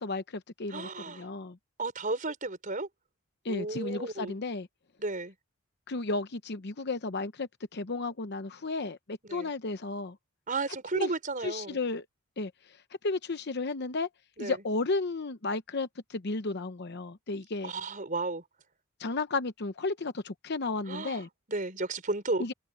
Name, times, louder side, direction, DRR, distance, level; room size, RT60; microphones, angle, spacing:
voice 1, 0.0-1.6 3.4-4.7 5.9-10.2 10.9-11.1 11.4-12.0 12.4-12.5 13.0-14.1 14.4-17.7 19.0-21.3 22.4-22.5, left 3 dB, 50° left, 0.8 m, -33 dB
voice 2, 0.7-1.3 1.8-2.9 3.5-4.4 5.0-5.3 9.2-9.5 10.5-11.8 14.4-14.6 17.6-18.4 20.9-22.5, right 3 dB, 40° right, 4.6 m, -33 dB
head